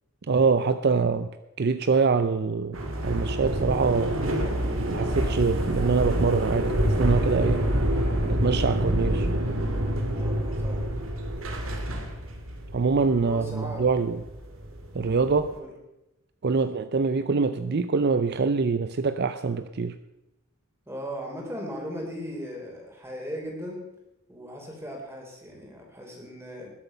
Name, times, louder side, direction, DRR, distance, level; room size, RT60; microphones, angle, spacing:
voice 1, 0.3-1.3 1.6-4.2 4.9-7.7 8.2-9.3 12.7-14.2 14.9-15.5 16.4-20.0, right 4 dB, 50° right, 11 dB, 0.5 m, -24 dB
sound 1, 2.7-15.5, right 1 dB, 75° right, 2.0 m, -27 dB
voice 2, 10.1-10.9 13.3-14.1 15.5-15.7 16.5-16.7 20.9-23.8 24.3-26.7, equal, 10° right, 0 dB, 3.7 m, -38 dB
20.0 x 8.0 x 5.6 m, 0.95 s
head